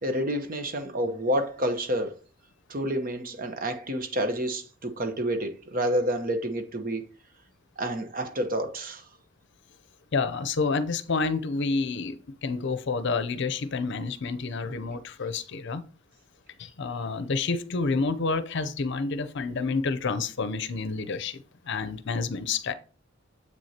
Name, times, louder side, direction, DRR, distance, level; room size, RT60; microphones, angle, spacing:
voice 1, 0.0-2.1 2.7-7.0 7.8-9.0 14.6-14.7, right 1 dB, 45° right, 1.0 m, -29 dB
voice 2, 10.1-15.8 16.6-22.7, left 4 dB, 60° left, 0.6 m, -29 dB
7.7 x 6.2 x 2.8 m
head